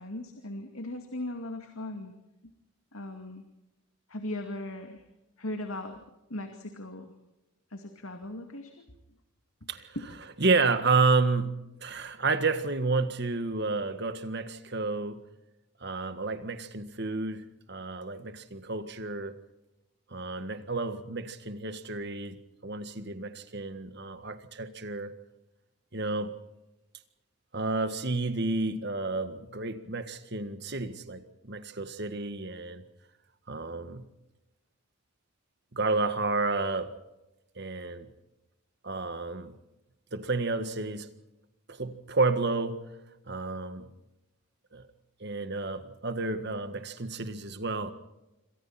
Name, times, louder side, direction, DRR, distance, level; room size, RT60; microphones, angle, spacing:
voice 1, 0.0-2.1 2.4-2.5 2.9-3.4 4.1-5.0 5.4-6.0 6.3-7.1 7.7-8.9 9.6-9.7 10.0-10.3, left 1 dB, 70° left, 5 dB, 2.4 m, -38 dB
voice 2, 10.4-15.2 15.8-19.4 20.1-22.4 22.6-25.1 25.9-26.4 27.5-32.8 33.5-34.1 35.7-36.9 37.6-38.1 38.8-39.5 40.1-41.1 41.7-42.8 43.3-43.9 44.7-44.8 45.2-47.9, right 3 dB, 50° right, 10 dB, 1.7 m, -30 dB
27.5 x 26.0 x 4.3 m, 0.96 s
head